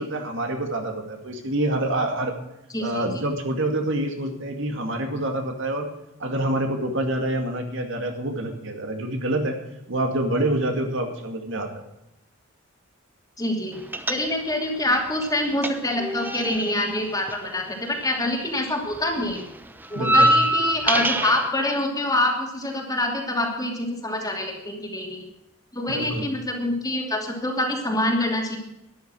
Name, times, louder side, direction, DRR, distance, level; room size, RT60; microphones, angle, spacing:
voice 1, 0.0-2.4 2.8-5.9 6.2-9.6 9.9-11.8 20.0-20.3 25.9-26.3, right 1 dB, 60° right, 4 dB, 2.3 m, -26 dB
voice 2, 2.7-3.0 13.4-13.8 14.1-19.4 19.9-25.2 25.7-28.6, left 1 dB, 20° left, 1 dB, 2.7 m, -26 dB
sound 1, 13.9-14.7 14.9-18.3 18.6-21.5, right 1 dB, 10° right, 0.8 m, -24 dB
12.5 x 10.5 x 6.3 m, 0.85 s
head